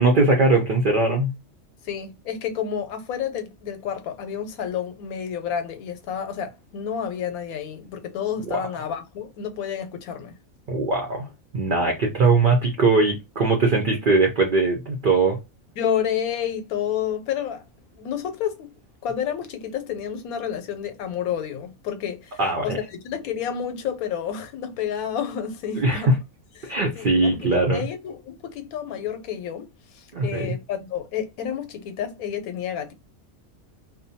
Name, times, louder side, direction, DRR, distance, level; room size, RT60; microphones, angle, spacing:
voice 1, 0.0-1.3 8.5-8.6 10.7-11.2 11.5-15.4 22.4-22.8 25.8-26.1 26.7-27.8 30.1-30.5, right 3 dB, 60° right, 0.5 m, -20 dB
voice 2, 1.8-10.3 15.8-17.6 17.9-18.7 19.0-26.2 26.6-32.9, left 8 dB, 85° left, 1.1 m, -30 dB
2.6 x 2.1 x 2.6 m
omnidirectional pair, 1.5 m